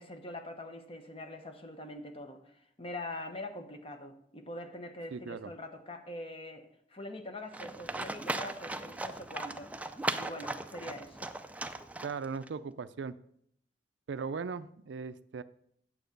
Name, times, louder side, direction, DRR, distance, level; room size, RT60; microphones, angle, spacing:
voice 1, 0.0-9.7 10.2-11.3, left 1 dB, 30° left, 6 dB, 1.1 m, -44 dB
voice 2, 5.1-5.5 12.0-13.2 14.1-15.4, right 5 dB, 75° right, 13 dB, 0.4 m, -38 dB
Livestock farm animals working animals, 7.5-12.5, right 2 dB, 10° right, 0.4 m, -38 dB
9.1 x 7.7 x 5.2 m, 0.69 s
head